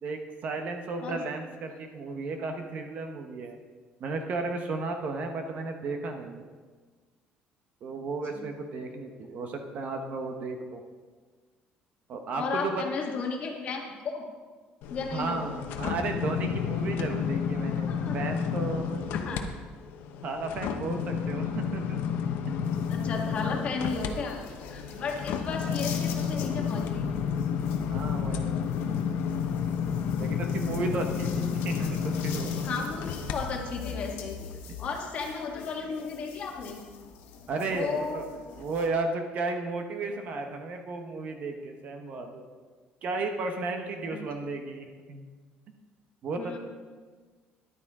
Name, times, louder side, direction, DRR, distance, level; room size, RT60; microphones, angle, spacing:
voice 1, 0.0-3.6 4.0-6.4 7.8-10.8 12.1-12.8 15.1-19.0 20.2-22.0 24.9-25.0 27.9-28.7 30.2-32.8 37.5-38.3 38.6-42.4 43.0-45.3 46.2-46.6, right 3 dB, 40° right, 5 dB, 1.0 m, -34 dB
voice 2, 12.3-14.2 14.9-15.4 17.9-18.2 19.1-19.5 22.9-24.4 24.7-27.1 32.6-34.4 34.8-36.8 37.6-38.2 44.1-44.2 46.4-46.6, left 4 dB, 35° left, 0 dB, 1.6 m, -34 dB
sound 1, 14.8-19.4 19.8-33.3 33.8-34.0, left 7 dB, 70° left, 0.9 m, -31 dB
sound 2, 22.6-38.9, left 5 dB, 90° left, 1.6 m, -43 dB
13.5 x 11.0 x 3.7 m, 1.5 s
cardioid pair, 175°, 4 cm